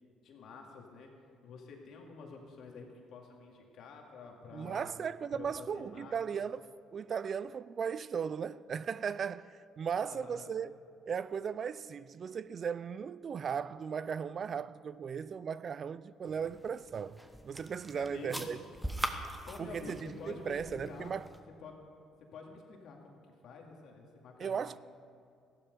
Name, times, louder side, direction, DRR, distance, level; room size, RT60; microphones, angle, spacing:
voice 1, 0.2-1.1 1.4-4.9 5.3-6.4 9.9-10.5 17.9-18.5 19.5-21.2 21.6-21.7 22.2-24.8, left 4 dB, 65° left, 2.3 m, -49 dB
voice 2, 4.5-6.6 6.9-10.7 11.1-17.2 17.4-18.6 19.6-21.3 24.4-24.8, right 7 dB, 50° right, 0.3 m, -37 dB
sound 1, 16.3-21.4, equal, 5° right, 1.1 m, -42 dB
14.5 x 11.5 x 5.3 m
supercardioid pair, 75°, 0 cm